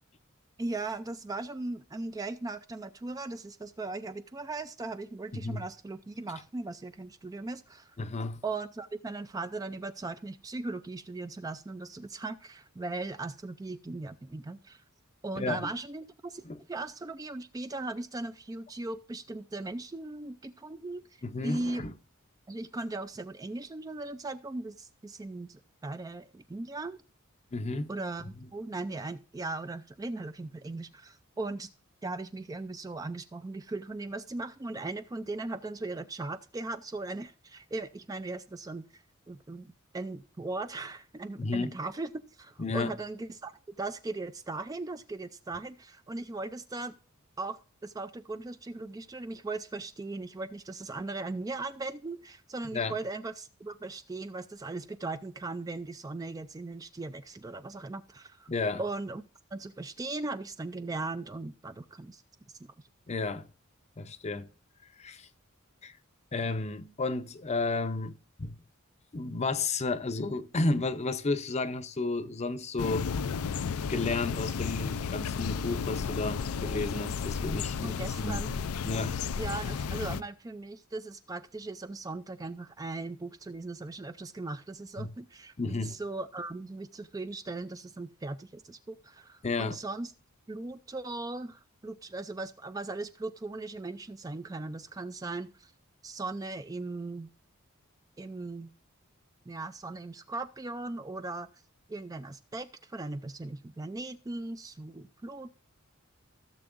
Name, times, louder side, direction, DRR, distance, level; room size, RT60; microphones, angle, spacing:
voice 1, 0.6-8.0 8.4-14.8 15.2-21.0 21.4-21.9 22.5-27.0 27.9-31.7 32.0-43.5 43.8-46.9 47.4-58.5 58.8-59.2 59.5-62.2 62.6-62.7 77.8-78.6 79.4-90.1 90.5-95.7 96.0-97.3 98.2-98.7 99.5-101.5 101.9-105.5, right 2 dB, 15° right, 0.3 m, -38 dB
voice 2, 5.3-5.6 8.0-8.4 15.4-15.7 16.5-16.6 21.2-21.9 27.5-27.9 41.4-41.7 42.6-42.9 52.7-52.9 58.5-58.8 63.1-63.5 64.0-64.5 65.0-65.3 65.8-65.9 66.3-68.6 69.1-73.1 73.9-78.4 78.8-79.2 85.0-85.1 85.6-86.0 89.4-89.8, left 3 dB, 30° left, 0.6 m, -32 dB
sound 1, 72.8-80.2, left 6 dB, 85° left, 0.4 m, -33 dB
16.0 x 6.8 x 2.5 m
head